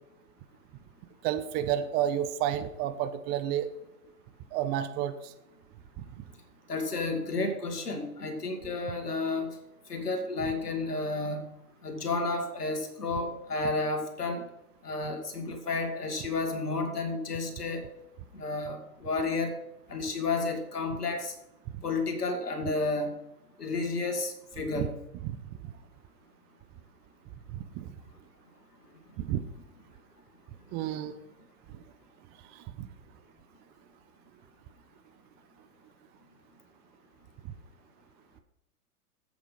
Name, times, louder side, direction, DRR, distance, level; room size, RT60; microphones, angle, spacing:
voice 1, 1.2-3.7 4.5-5.3 6.0-6.2 21.7-21.8 24.7-24.9 25.2-25.7 27.5-27.9 29.2-29.4 30.7-31.1 31.7-31.8 32.5-32.9 37.4-37.5, right 11 dB, 25° right, 10 dB, 0.5 m, -31 dB
voice 2, 6.7-9.6 9.9-11.4 11.8-14.5 14.8-17.8 18.3-19.5 19.9-21.3 21.8-23.2 23.6-24.9, left 3 dB, 90° left, 6 dB, 2.0 m, -31 dB
8.1 x 8.1 x 5.5 m, 0.90 s
hypercardioid pair, 110°, 46 cm